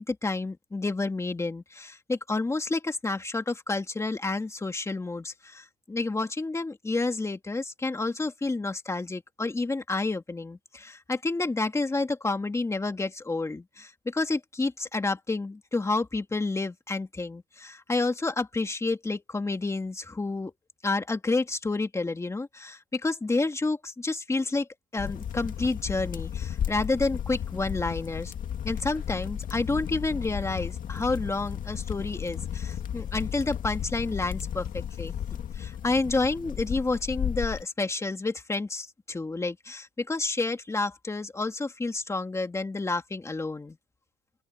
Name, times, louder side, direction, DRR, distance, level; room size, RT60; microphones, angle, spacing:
voice 1, 0.0-20.5 20.8-24.7 24.9-28.3 28.6-43.8, left 3 dB, 15° left, 2.3 m, -30 dB
sound 1, 25.0-37.6, left 9 dB, 55° left, 2.1 m, -34 dB
open air
cardioid pair, 110°, 17 cm